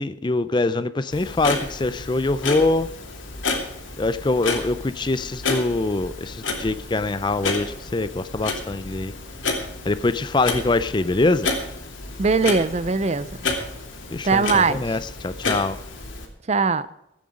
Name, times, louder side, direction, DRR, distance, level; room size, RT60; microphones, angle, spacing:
voice 1, 0.0-2.9 4.0-9.1 9.8-11.5 14.1-15.8, left 2 dB, 25° left, 0.4 m, -24 dB
Clock, 1.1-16.3, left 3 dB, 85° left, 2.7 m, -31 dB
voice 2, 12.2-13.3 14.2-14.9 16.5-16.9, right 4 dB, 35° right, 0.5 m, -20 dB
15.0 x 9.4 x 5.1 m
head